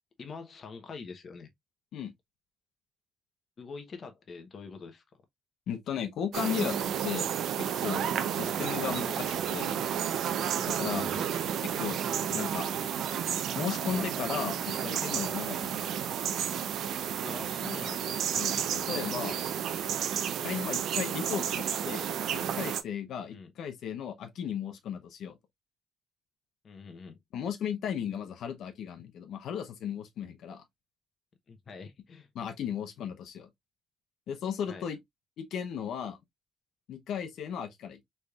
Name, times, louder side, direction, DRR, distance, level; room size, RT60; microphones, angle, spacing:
voice 1, 0.2-1.5 3.6-5.0 8.4-8.6 10.8-11.3 17.2-18.2 23.3-23.5 26.6-27.2 31.5-32.3 34.7-34.9, left 4 dB, 45° left, 0.8 m, -44 dB
voice 2, 5.7-6.8 7.0-7.3 7.6-8.1 8.4-9.7 10.7-11.1 11.8-12.0 12.3-12.7 13.5-15.8 18.3-19.4 20.4-22.1 22.5-25.4 27.3-30.6 32.3-33.5 34.3-35.0 35.4-36.2 36.9-38.0, left 8 dB, 80° left, 0.8 m, -35 dB
sound 1, 6.3-22.8, right 9 dB, 80° right, 0.6 m, -31 dB
4.1 x 3.3 x 2.3 m
cardioid pair, 120°, 0 cm